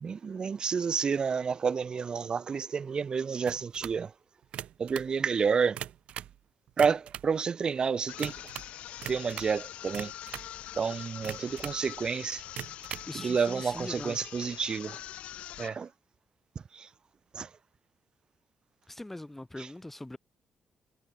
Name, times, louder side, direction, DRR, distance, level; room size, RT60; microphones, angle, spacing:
voice 1, 0.0-4.1 4.8-5.8 6.8-8.4 9.1-10.1 10.8-12.4 13.1-15.0 15.6-15.9 16.7-16.9 17.3-17.5 19.6-19.7, right 6 dB, 45° right, 1.5 m, -30 dB
sound 1, 3.5-4.0 4.4-5.1 5.6-6.4 6.7-7.3 8.2-8.7 9.0-9.6 9.9-10.5 11.2-11.8 12.5-13.1, right 11 dB, 75° right, 3.0 m, -41 dB
sound 2, 8.1-15.8, left 12 dB, 85° left, 1.2 m, -44 dB
voice 2, 13.1-14.2 18.9-20.2, left 1 dB, 10° left, 1.0 m, -41 dB
cardioid pair, 95°, 2 cm